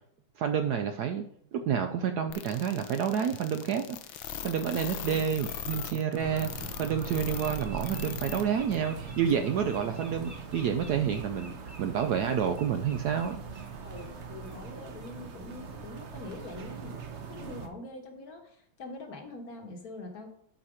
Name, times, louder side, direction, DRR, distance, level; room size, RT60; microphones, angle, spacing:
voice 1, 0.4-1.3 1.5-4.0 4.4-13.4, right 8 dB, 70° right, 7 dB, 1.0 m, -29 dB
sound 1, 2.3-8.4 8.7-8.8 9.3-9.4, left 10 dB, 80° left, 1.4 m, -39 dB
Bird, 4.1-4.3 4.7-5.1 5.4-14.1 14.4-14.6 15.0-15.2, right 1 dB, 10° right, 0.9 m, -52 dB
sound 2, 6.2-17.7, right 5 dB, 50° right, 0.9 m, -41 dB
voice 2, 13.8-16.9 17.3-20.3, left 2 dB, 55° left, 4 dB, 1.5 m, -44 dB
11.5 x 4.3 x 4.9 m, 0.68 s
omnidirectional pair, 2.1 m